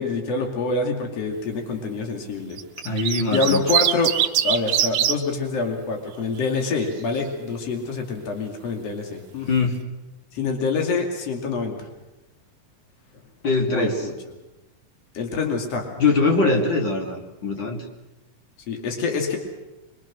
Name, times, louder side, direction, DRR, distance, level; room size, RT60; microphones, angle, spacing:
voice 1, 0.0-2.6 3.3-4.1 4.4-9.5 10.3-11.7 13.7-14.1 15.1-15.9 18.7-19.4, left 4 dB, 55° left, 3 dB, 3.7 m, -26 dB
sound 1, 2.6-5.2 6.4-6.9, right 10 dB, 70° right, 2.2 m, -22 dB
voice 2, 2.8-3.6 9.5-9.8 13.4-14.0 16.0-17.8, left 3 dB, 40° left, 1 dB, 3.2 m, -22 dB
25.0 x 23.5 x 6.3 m, 1.1 s
omnidirectional pair, 3.4 m